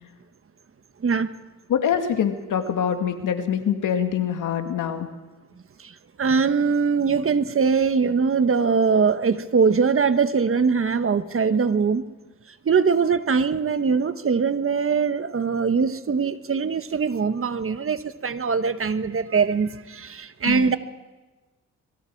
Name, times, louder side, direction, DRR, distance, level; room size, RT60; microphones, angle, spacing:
voice 1, 1.0-1.3 5.8-5.9 6.2-12.0 12.6-20.8, right 5 dB, 45° right, 11 dB, 1.4 m, -22 dB
voice 2, 1.7-5.1 20.4-20.7, left 8 dB, 80° left, 6 dB, 2.3 m, -24 dB
26.0 x 23.0 x 4.8 m, 1.2 s
cardioid pair, 70°, 31 cm